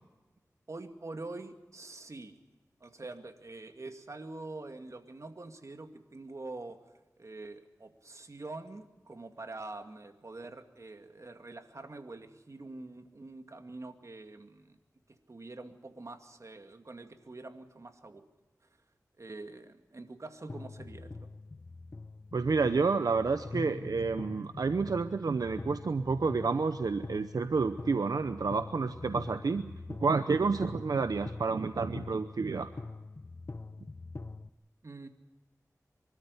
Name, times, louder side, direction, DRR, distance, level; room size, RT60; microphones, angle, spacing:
voice 1, 0.7-2.3 2.8-6.8 7.2-14.8 15.3-18.2 19.2-21.1 34.8-35.1, right 2 dB, 55° right, 6 dB, 2.3 m, -45 dB
sound 1, 20.5-34.5, left 3 dB, 45° left, 0.9 m, -44 dB
voice 2, 22.3-29.7 30.0-32.7, right 4 dB, 85° right, 10 dB, 0.8 m, -29 dB
25.0 x 13.5 x 9.7 m, 1.2 s
wide cardioid pair, 55°, 6 cm